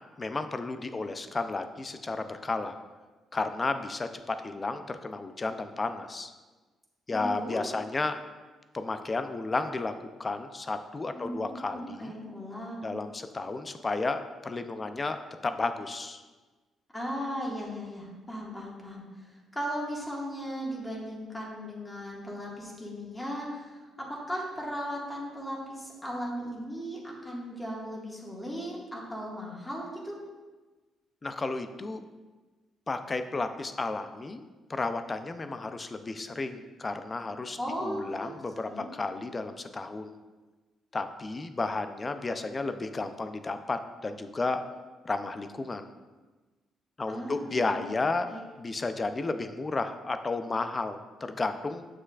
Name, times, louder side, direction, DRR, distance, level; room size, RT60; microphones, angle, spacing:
voice 1, 0.2-2.8 3.3-6.3 7.1-8.2 8.7-9.9 10.2-12.1 12.8-15.2 15.4-16.2 31.2-32.0 32.9-40.1 40.9-44.6 45.0-45.9 47.0-48.3 48.6-51.9, left 3 dB, 30° left, 9 dB, 0.5 m, -32 dB
voice 2, 7.1-7.6 11.1-11.4 11.7-13.0 16.9-19.0 19.5-30.1 37.6-38.3 38.7-38.9 47.1-47.9 48.2-48.4, equal, 15° left, -3 dB, 1.8 m, -37 dB
7.4 x 6.3 x 2.4 m, 1.3 s
cardioid pair, 90°, 0 cm